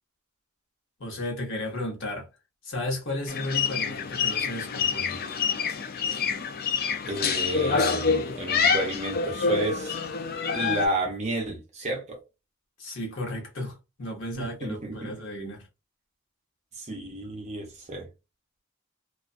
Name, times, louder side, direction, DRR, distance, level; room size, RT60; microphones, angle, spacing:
voice 1, 1.0-2.3 2.6-5.2 12.8-15.7, left 1 dB, 65° left, 1.0 m, -34 dB
sound 1, 3.3-10.9, left 5 dB, 50° left, 0.4 m, -27 dB
voice 2, 7.0-10.0 10.5-12.2 14.3-15.2 16.8-18.1, right 2 dB, 35° right, 0.6 m, -32 dB
2.4 x 2.2 x 2.5 m
head